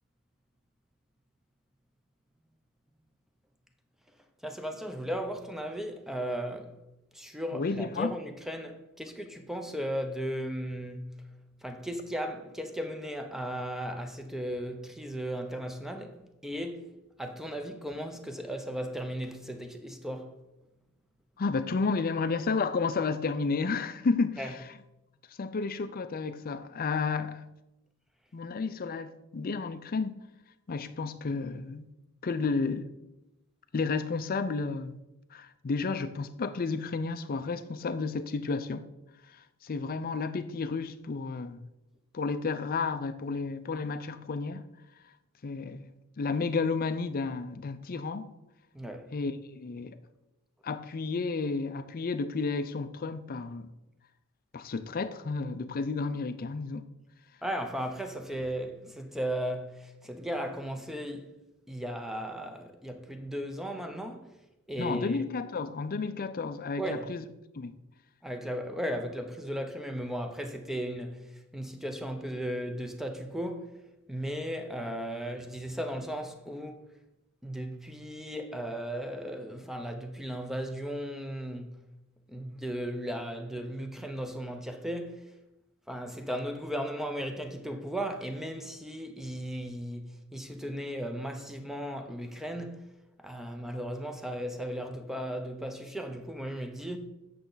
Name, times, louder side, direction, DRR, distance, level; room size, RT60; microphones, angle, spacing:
voice 1, 4.4-6.7 7.1-11.2 11.6-16.9 17.2-20.4 24.4-24.5 48.7-49.1 57.4-61.3 61.7-64.3 64.7-65.2 66.8-67.1 68.2-73.7 74.1-76.8 77.4-81.8 82.3-85.2 85.9-92.9 93.2-97.0, equal, ahead, 0.6 m, -36 dB
voice 2, 7.5-8.1 21.4-24.7 25.3-27.4 28.3-30.2 30.7-31.9 32.2-32.9 33.7-35.0 35.3-38.9 39.3-41.7 42.1-44.6 45.4-48.3 49.1-50.0 50.6-53.7 54.5-56.9 64.8-67.2 67.5-67.7, left 4 dB, 40° left, 0.5 m, -32 dB
8.3 x 6.6 x 3.9 m
head